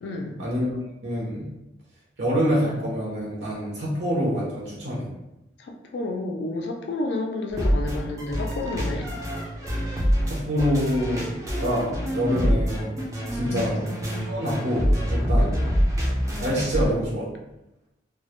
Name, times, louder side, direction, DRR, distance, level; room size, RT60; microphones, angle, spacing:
voice 1, 0.0-0.4 3.8-3.9 5.6-9.1 12.3-12.6 13.5-13.7 15.3-15.7, left 2 dB, 70° left, 3 dB, 0.3 m, -31 dB
voice 2, 1.0-1.5 2.2-5.1 10.3-13.0 13.3-13.8 14.2-15.5 16.4-17.3, equal, 70° right, -6 dB, 0.6 m, -26 dB
sound 1, 7.5-16.9, equal, 20° right, 0.4 m, -26 dB
2.2 x 2.0 x 2.9 m, 0.94 s
head